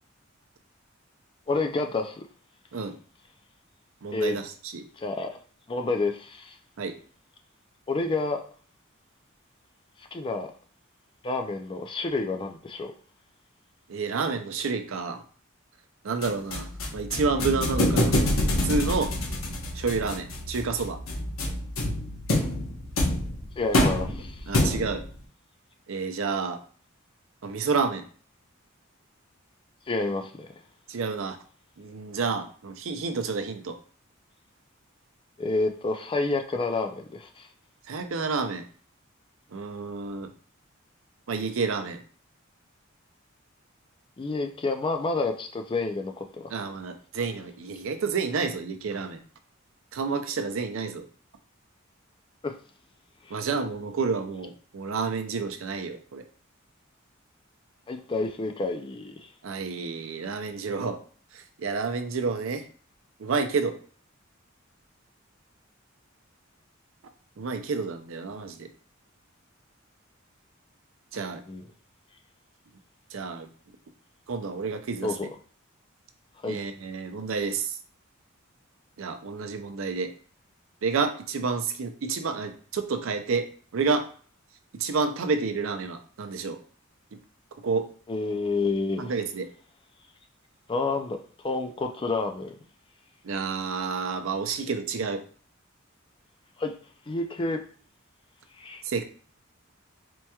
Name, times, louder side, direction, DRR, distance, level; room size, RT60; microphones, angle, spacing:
voice 1, 1.5-2.3 4.1-4.4 5.0-5.4 5.7-6.6 7.9-8.4 10.0-10.5 11.2-12.9 23.6-24.7 29.9-30.5 35.4-37.5 44.2-46.4 52.4-52.6 53.3-53.4 57.9-59.3 71.5-71.6 75.0-75.3 76.4-76.6 88.1-89.1 90.7-92.5 96.6-96.7 97.1-97.6 98.6-98.8, left 3 dB, 25° left, 0.4 m, -29 dB
voice 2, 4.0-4.8 6.8-7.0 13.9-15.2 16.0-18.1 18.4-19.1 19.7-21.0 24.5-25.0 25.9-26.6 27.4-28.0 30.9-31.4 31.8-33.8 37.9-38.6 39.5-40.3 41.3-42.0 46.5-49.2 49.9-51.0 53.3-56.3 59.4-61.0 61.3-62.7 63.2-63.8 67.4-68.7 71.1-71.4 73.1-73.5 74.3-75.3 76.5-77.8 79.0-80.1 80.8-83.5 83.7-84.0 84.7-86.6 87.6-87.9 89.0-89.5 93.2-95.2 98.8-99.0, right 4 dB, 75° right, 0.5 m, -29 dB
sound 1, 16.2-25.1, left 1 dB, 85° left, 0.9 m, -27 dB
4.5 x 2.9 x 2.3 m
head